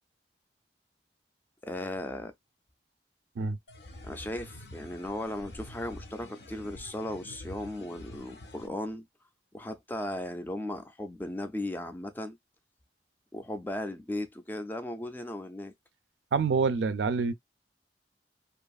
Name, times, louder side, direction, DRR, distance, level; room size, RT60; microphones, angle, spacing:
voice 1, 1.6-2.3 4.0-9.1 9.5-12.4 13.3-15.7, left 1 dB, 10° left, 0.3 m, -36 dB
sound 1, 3.7-8.7, left 1 dB, 65° left, 0.5 m, -47 dB
voice 2, 16.3-17.3, right 5 dB, 85° right, 0.4 m, -26 dB
2.7 x 2.3 x 2.3 m
head